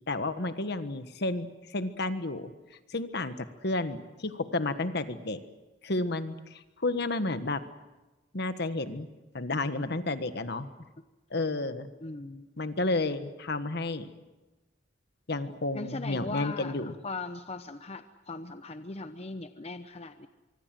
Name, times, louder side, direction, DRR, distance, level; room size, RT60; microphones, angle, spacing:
voice 1, 0.1-2.5 2.9-5.4 5.8-7.6 8.3-9.1 9.3-10.7 11.3-11.9 12.6-14.1 15.3-16.9, left 2 dB, 60° left, 10 dB, 1.5 m, -31 dB
voice 2, 12.0-12.5 15.7-20.3, left 3 dB, 35° left, 9 dB, 0.9 m, -39 dB
24.5 x 24.5 x 7.7 m, 1.1 s
head